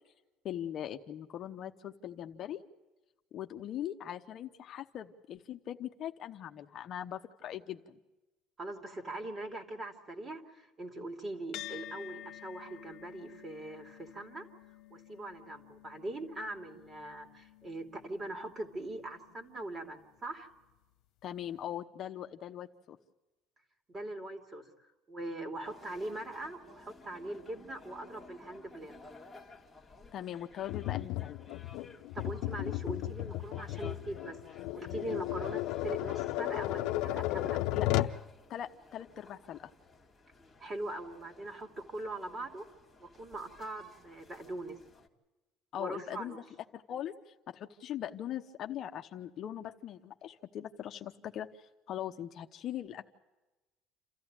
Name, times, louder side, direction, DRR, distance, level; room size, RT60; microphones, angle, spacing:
voice 1, 0.4-2.6 3.3-8.0 21.2-23.0 30.1-31.4 37.7-38.1 38.5-39.7 45.7-46.4 46.7-53.0, left 11 dB, 45° left, 5 dB, 1.0 m, -41 dB
voice 2, 8.6-14.5 14.9-20.5 23.9-24.7 25.1-29.1 32.1-37.6 40.6-42.7 43.0-44.8 45.8-46.4, right 1 dB, 20° right, 5 dB, 2.8 m, -41 dB
sound 1, 11.5-20.2, left 13 dB, 60° left, 1.3 m, -51 dB
sound 2, 25.6-45.1, left 3 dB, 5° left, 2.1 m, -56 dB
Tap, 30.7-38.2, left 16 dB, 80° left, 0.7 m, -34 dB
28.5 x 14.5 x 8.9 m, 1.1 s
cardioid pair, 150°, 0 cm